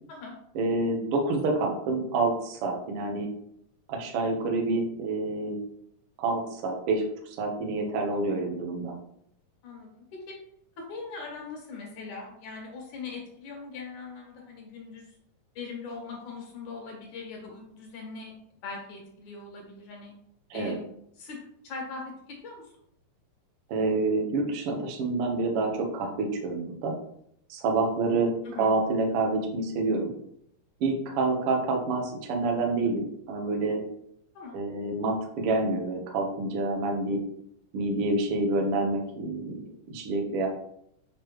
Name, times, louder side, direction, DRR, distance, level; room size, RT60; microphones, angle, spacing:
voice 1, 0.5-3.3 3.9-5.6 6.2-8.9 20.5-20.7 23.7-26.9 27.5-30.1 30.8-33.8 34.5-37.2 37.7-40.5, right 3 dB, 85° right, 2 dB, 1.2 m, -28 dB
voice 2, 9.6-10.4 10.8-15.1 15.5-18.3 18.6-20.1 20.5-20.8 21.2-21.4 21.6-22.0 22.4-22.6 28.4-28.7 34.3-34.6, left 4 dB, 60° left, 0 dB, 2.6 m, -40 dB
6.5 x 4.8 x 3.0 m, 0.72 s
omnidirectional pair, 4.2 m